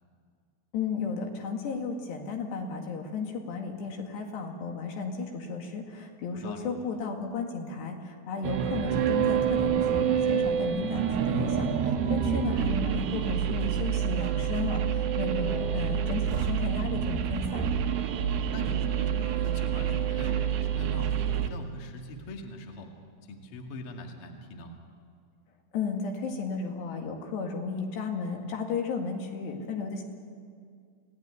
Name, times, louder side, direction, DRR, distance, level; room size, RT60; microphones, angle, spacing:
voice 1, 0.7-17.7 25.7-30.0, left 4 dB, 65° left, 3 dB, 4.0 m, -34 dB
sound 1, 8.4-21.5, right 8 dB, 70° right, 2.8 m, -27 dB
voice 2, 18.5-21.1 21.5-22.9 23.3-24.7, equal, 45° left, 2 dB, 1.9 m, -42 dB
28.0 x 17.5 x 9.6 m, 2.1 s
omnidirectional pair, 5.6 m